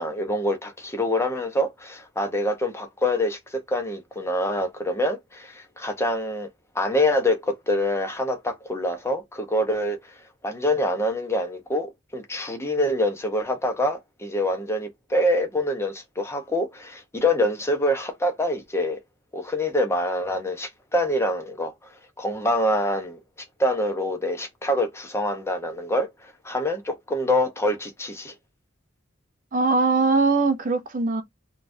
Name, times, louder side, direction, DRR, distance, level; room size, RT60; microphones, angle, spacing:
voice 1, 0.0-6.5 6.7-10.1 10.4-19.0 19.3-21.7 22.2-23.2 23.6-28.3, left 1 dB, 15° left, 0.6 m, -25 dB
voice 2, 29.5-31.2, right 3 dB, 40° right, 0.5 m, -21 dB
3.8 x 2.3 x 2.5 m
head